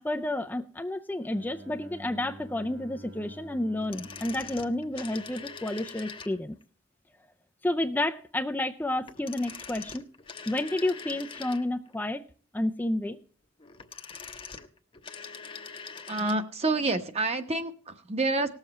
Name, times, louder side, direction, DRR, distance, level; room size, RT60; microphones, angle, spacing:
voice 1, 0.0-6.5 7.6-10.0 10.5-12.2 12.5-13.2, left 1 dB, 10° left, 5 dB, 0.4 m, -30 dB
Bowed string instrument, 1.2-6.0, right 1 dB, 85° right, 2.6 m, -49 dB
sound 1, 3.8-6.6 9.0-11.9 13.6-16.5 16.7-16.8, left 5 dB, 30° left, 0.9 m, -43 dB
voice 2, 16.1-18.5, right 2 dB, 35° right, 8 dB, 1.1 m, -28 dB
18.5 x 7.3 x 4.3 m, 0.43 s
head